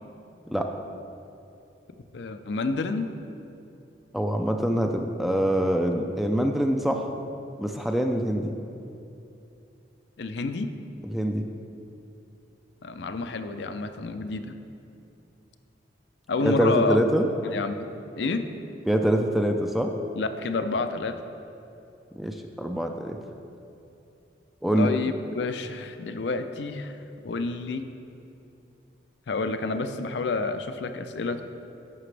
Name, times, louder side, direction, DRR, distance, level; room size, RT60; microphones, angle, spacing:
voice 1, 2.1-3.1 10.2-10.7 12.8-14.6 16.3-17.0 17.4-18.5 20.2-21.2 24.8-27.0 27.2-27.9 29.3-31.4, left 3 dB, 70° left, 8 dB, 0.5 m, -29 dB
voice 2, 4.1-7.1 7.6-8.5 11.0-11.4 16.4-17.3 18.9-19.9 22.1-23.2 24.6-24.9, equal, ahead, 3 dB, 0.3 m, -24 dB
11.0 x 6.8 x 3.3 m, 2.8 s
head